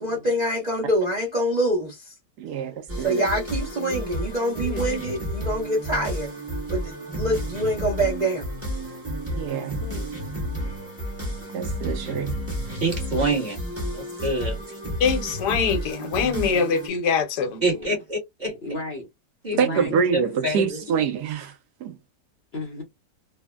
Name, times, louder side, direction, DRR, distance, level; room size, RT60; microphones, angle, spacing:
voice 1, 0.0-2.1 2.7-2.8 3.0-6.3 6.7-8.5, right 1 dB, 45° right, 0.5 m, -25 dB
voice 2, 2.4-3.3 9.3-9.8 11.5-12.4 19.6-21.6 21.8-22.0, right 6 dB, 70° right, 1.2 m, -26 dB
sound 1, 2.9-16.9, equal, 10° right, 0.8 m, -31 dB
voice 3, 9.4-10.1 17.6-18.0 18.4-19.1 19.5-20.0 22.5-22.8, left 2 dB, 50° left, 0.8 m, -36 dB
voice 4, 12.8-13.6 13.9-14.8 17.6-18.5 19.4-20.8, right 2 dB, 30° right, 1.0 m, -27 dB
voice 5, 15.0-17.6, left 5 dB, 75° left, 1.3 m, -23 dB
3.3 x 2.0 x 2.2 m
omnidirectional pair, 1.8 m